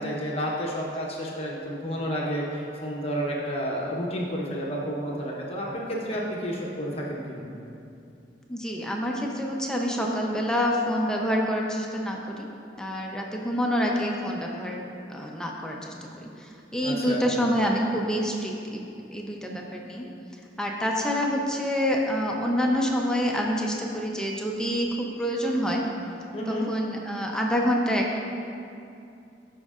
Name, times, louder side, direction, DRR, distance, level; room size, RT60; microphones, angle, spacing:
voice 1, 0.0-7.5 16.8-17.3 26.3-26.7, equal, 35° left, -3 dB, 0.9 m, -30 dB
voice 2, 8.5-12.5 12.8-20.1 20.6-25.9 26.5-28.2, equal, 5° left, -1 dB, 0.6 m, -27 dB
14.5 x 5.3 x 2.4 m, 2.6 s
head